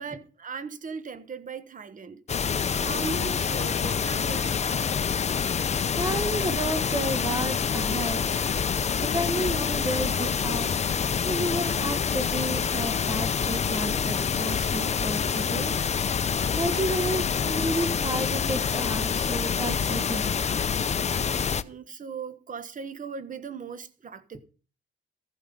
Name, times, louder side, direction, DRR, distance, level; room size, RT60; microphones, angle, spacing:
voice 1, 0.0-2.2 2.7-4.9 20.9-24.4, right 5 dB, 40° right, 1.4 m, -38 dB
sound 1, 2.3-21.6, left 6 dB, 35° left, 0.7 m, -27 dB
voice 2, 5.9-8.2 9.0-10.8 11.2-15.7 16.2-20.3, right 1 dB, 20° right, 1.3 m, -31 dB
14.5 x 9.2 x 5.4 m
cardioid pair, 90°, 20 cm